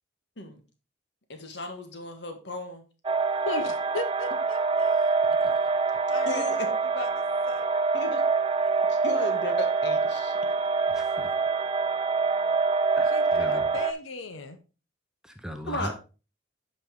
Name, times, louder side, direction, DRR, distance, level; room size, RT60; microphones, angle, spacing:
voice 1, 1.3-2.8 6.2-6.7 7.9-8.2 8.9-10.4 15.7-15.9, left 2 dB, 60° left, 6 dB, 1.5 m, -35 dB
sound 1, 3.0-13.9, right 4 dB, 25° right, 0.4 m, -25 dB
voice 2, 3.4-5.1 6.1-7.7 8.6-8.9 13.1-14.6, left 3 dB, 80° left, 9 dB, 0.9 m, -37 dB
voice 3, 10.9-11.3 12.0-12.1 13.0-13.8 15.2-15.9, equal, 5° right, 5 dB, 0.8 m, -39 dB
8.8 x 5.3 x 3.8 m, 0.33 s
head